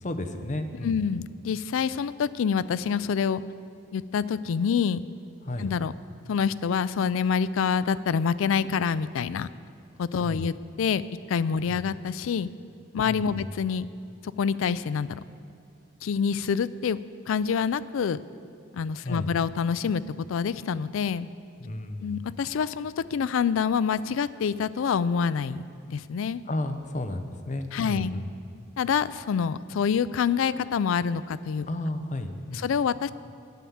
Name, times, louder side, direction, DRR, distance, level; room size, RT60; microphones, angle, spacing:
voice 1, 0.0-1.0 5.4-5.7 10.2-10.5 11.7-11.8 13.0-13.5 19.0-19.3 21.6-22.2 26.5-28.3 31.7-32.7, left 1 dB, 35° left, 7 dB, 0.7 m, -33 dB
voice 2, 0.8-3.4 3.9-5.0 5.6-5.9 6.3-9.5 10.0-11.0 11.3-12.5 12.9-13.9 14.4-15.2 16.0-17.0 17.3-18.2 18.7-20.0 20.3-21.3 22.0-25.6 25.9-26.4 27.7-28.1 28.8-31.7 32.6-33.1, left 6 dB, 80° left, 16 dB, 0.3 m, -26 dB
9.5 x 9.2 x 7.1 m, 2.5 s
head